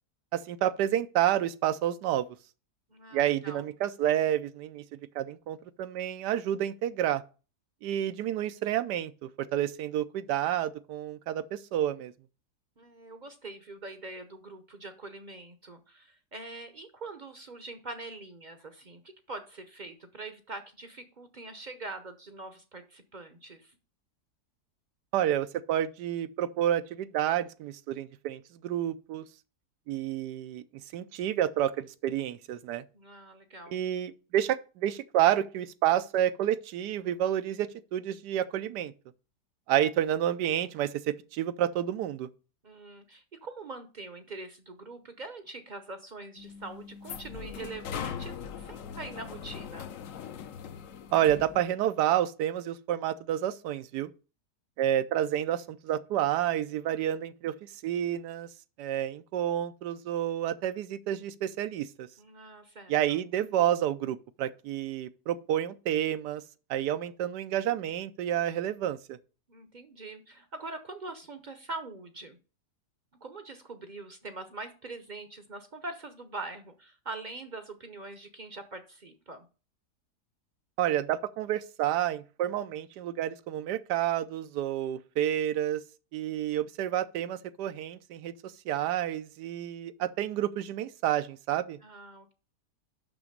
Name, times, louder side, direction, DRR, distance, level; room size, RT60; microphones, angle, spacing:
voice 1, 0.3-2.3 3.1-4.8 5.1-7.2 7.8-12.1 25.1-29.2 29.9-30.6 30.9-32.8 33.7-38.9 39.7-42.3 51.1-54.1 54.8-58.5 58.8-62.1 62.9-66.4 66.7-69.2 80.8-85.8 86.1-91.8, right 11 dB, 90° right, 1.2 m, -29 dB
voice 2, 2.9-3.7 12.8-19.0 19.3-23.8 32.9-33.8 42.6-49.9 62.2-63.2 69.5-72.4 73.2-79.4 91.8-92.3, right 3 dB, 40° right, 0.7 m, -43 dB
sound 1, 46.4-51.6, left 7 dB, 60° left, 1.0 m, -40 dB
6.1 x 6.0 x 6.6 m
omnidirectional pair, 1.7 m